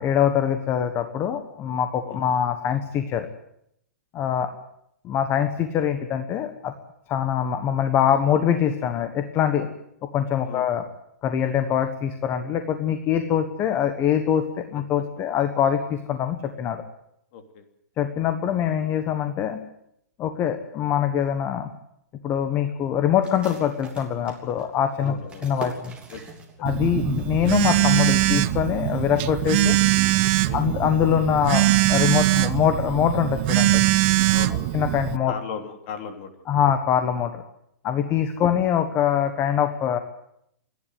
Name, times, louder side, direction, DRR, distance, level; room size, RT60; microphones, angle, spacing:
voice 1, 0.0-3.3 4.1-4.5 5.0-6.7 7.1-9.7 10.1-10.8 11.2-16.8 18.0-19.6 20.2-21.7 22.2-25.1 25.4-26.0 26.6-29.8 30.5-33.8 34.7-35.3 36.5-37.4 37.8-40.0, left 9 dB, 25° left, 8 dB, 1.3 m, -23 dB
voice 2, 17.3-17.6 25.0-25.5 26.1-26.3 26.6-26.7 29.7-29.8 30.4-30.7 34.3-34.8 35.2-36.3 38.3-38.4, left 6 dB, 40° left, 6 dB, 3.2 m, -37 dB
sound 1, 23.2-26.9 27.1-27.2 27.7-28.1, right 3 dB, 10° right, 3.3 m, -42 dB
Telephone, 26.7-35.2, right 17 dB, 35° right, 0.7 m, -22 dB
28.5 x 11.0 x 9.4 m, 0.75 s
hypercardioid pair, 155°, 9 cm